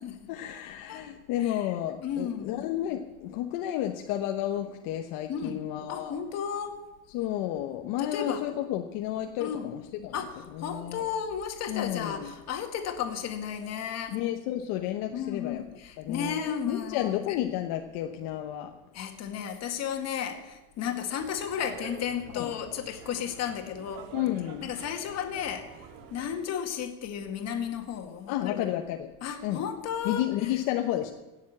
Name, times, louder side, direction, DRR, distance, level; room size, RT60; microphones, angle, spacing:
voice 1, 0.3-6.2 7.1-10.1 10.7-11.0 11.7-12.3 14.1-15.6 16.0-16.4 16.7-18.7 22.3-22.5 24.1-24.7 28.3-29.1 29.4-29.6 30.0-31.1, left 12 dB, 65° left, 4 dB, 1.1 m, -31 dB
voice 2, 1.4-1.7 2.0-2.6 5.3-5.6 5.9-6.8 8.0-8.4 9.4-9.7 10.1-14.2 15.1-17.4 18.9-24.0 24.6-28.8 29.2-30.6, left 8 dB, 40° left, 5 dB, 2.0 m, -34 dB
sound 1, 21.2-26.3, right 6 dB, 60° right, 2.1 m, -47 dB
17.5 x 7.3 x 8.7 m, 1.1 s
cardioid pair, 160°, 39 cm